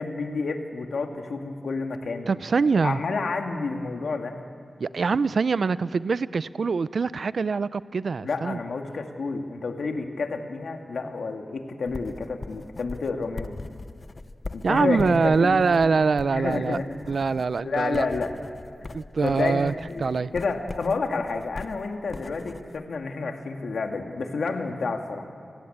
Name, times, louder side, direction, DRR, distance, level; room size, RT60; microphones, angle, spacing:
voice 1, 0.0-2.3 2.7-4.4 8.2-13.6 14.5-15.8 16.3-16.9 17.6-18.3 19.2-25.3, left 4 dB, 75° left, 4 dB, 2.2 m, -30 dB
voice 2, 2.3-3.0 4.8-8.6 14.6-16.8 17.1-18.1 18.9-19.7 20.0-20.3, right 4 dB, 60° right, 17 dB, 0.5 m, -24 dB
sound 1, 11.9-22.8, left 3 dB, 35° left, 0.6 m, -41 dB
28.5 x 17.5 x 8.8 m, 2.3 s
wide cardioid pair, 110°, 0 cm